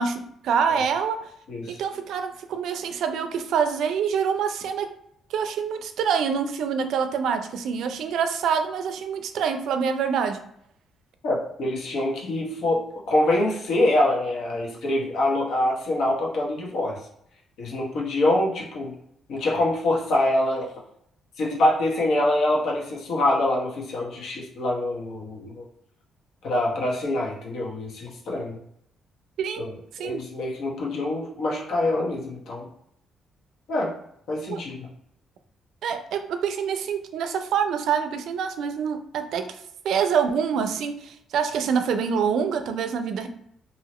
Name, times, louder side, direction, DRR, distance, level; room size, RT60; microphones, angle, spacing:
voice 1, 0.0-1.3 1.7-4.9 5.3-10.4 29.4-29.7 30.0-30.2 34.5-34.6 35.8-43.3, right 6 dB, 75° right, 8 dB, 0.4 m, -26 dB
voice 2, 1.5-1.8 11.2-17.0 17.6-18.9 19.3-20.7 21.4-25.6 26.4-28.6 29.6-29.7 30.0-32.7 33.7-33.9 34.3-34.9, left 1 dB, 70° left, -2 dB, 1.0 m, -25 dB
2.8 x 2.7 x 3.0 m, 0.73 s
cardioid pair, 90°, 0 cm